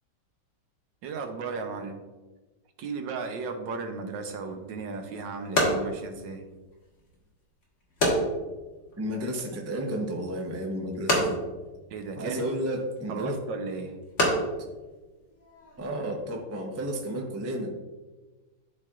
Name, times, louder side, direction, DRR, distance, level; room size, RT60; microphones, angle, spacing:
voice 1, 1.0-2.0 2.8-6.4 11.9-12.5 13.1-13.9, right 4 dB, 90° right, 6 dB, 1.5 m, -35 dB
sound 1, 4.5-15.9, equal, 45° left, 1.7 m, -31 dB
voice 2, 9.0-11.4 12.1-13.3 15.8-17.7, right 1 dB, 25° right, 1 dB, 0.3 m, -32 dB
12.0 x 4.3 x 2.4 m, 1.2 s
omnidirectional pair, 1.9 m